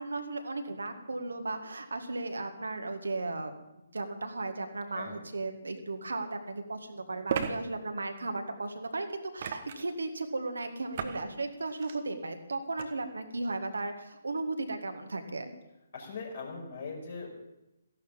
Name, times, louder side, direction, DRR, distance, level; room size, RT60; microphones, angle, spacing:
voice 1, 0.0-15.5, right 2 dB, 65° right, 5 dB, 1.9 m, -36 dB
sound 1, 5.8-5.9 7.3-7.5 9.4-9.9 10.9-11.2 11.7-12.0 12.8-12.9, right 7 dB, 40° right, 1.3 m, -33 dB
voice 2, 15.9-17.4, left 4 dB, 50° left, 0 dB, 5.7 m, -40 dB
15.5 x 11.5 x 7.2 m, 0.93 s
figure-of-eight pair, 135°, 0 cm